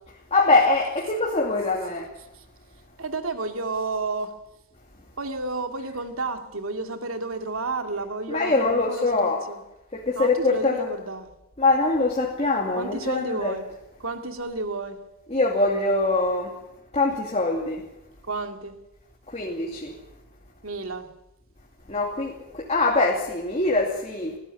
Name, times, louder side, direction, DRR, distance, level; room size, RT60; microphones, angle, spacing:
voice 1, 0.3-2.1 8.3-9.4 9.9-10.9 11.6-13.6 15.3-16.6 16.9-17.9 19.3-20.0 21.9-24.4, left 3 dB, 30° left, 2.6 m, -23 dB
voice 2, 3.0-4.3 5.2-9.6 10.2-11.3 12.8-13.6 14.0-15.0 18.3-18.7 20.6-21.1, right 3 dB, 70° right, 2.4 m, -31 dB
20.0 x 15.5 x 9.9 m
head